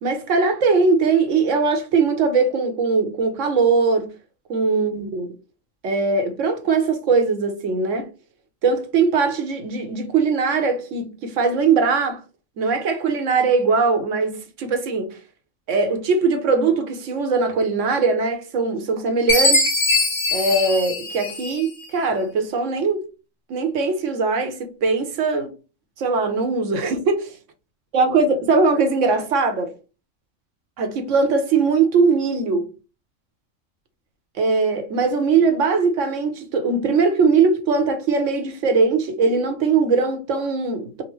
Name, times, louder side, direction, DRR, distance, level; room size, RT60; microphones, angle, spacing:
voice 1, 0.0-4.1 4.5-5.3 5.8-8.1 8.6-12.2 12.6-15.2 15.7-19.7 20.3-23.0 23.5-25.5 26.0-27.3 27.9-29.7 30.8-32.7 34.4-41.0, right 4 dB, 70° right, 1.1 m, -20 dB
Chime, 19.3-21.8, left 2 dB, 60° left, 1.6 m, -21 dB
5.2 x 2.1 x 3.0 m
omnidirectional pair, 1.3 m